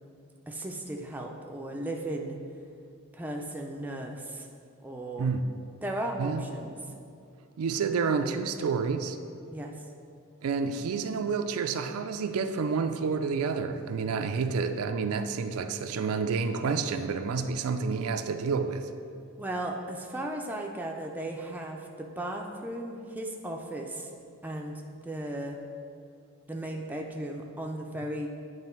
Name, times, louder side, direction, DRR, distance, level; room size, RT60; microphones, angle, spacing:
voice 1, 0.5-2.4 3.1-4.5 4.8-5.3 5.8-6.8 9.5-9.8 19.4-24.1 24.4-25.6 26.5-28.3, right 1 dB, 10° right, 0 dB, 0.4 m, -36 dB
voice 2, 7.6-9.2 10.4-18.9, right 5 dB, 75° right, 8 dB, 0.4 m, -29 dB
8.9 x 3.2 x 4.4 m, 2.5 s
head